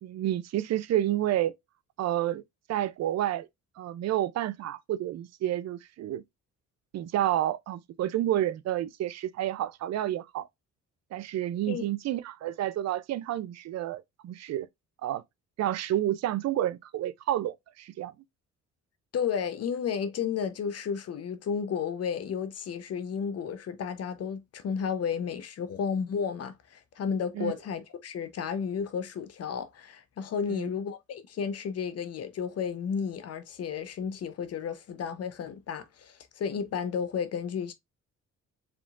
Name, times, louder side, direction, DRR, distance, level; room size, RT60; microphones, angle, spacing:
voice 1, 0.0-1.5 2.0-2.4 2.7-3.5 3.8-6.2 6.9-10.5 11.1-14.7 15.0-15.2 15.6-18.1 27.4-27.5 30.5-30.7, right 12 dB, 60° right, 0.4 m, -30 dB
voice 2, 19.1-37.7, left 7 dB, 55° left, 0.8 m, -32 dB
4.8 x 3.6 x 2.4 m
cardioid pair, 90°, 30 cm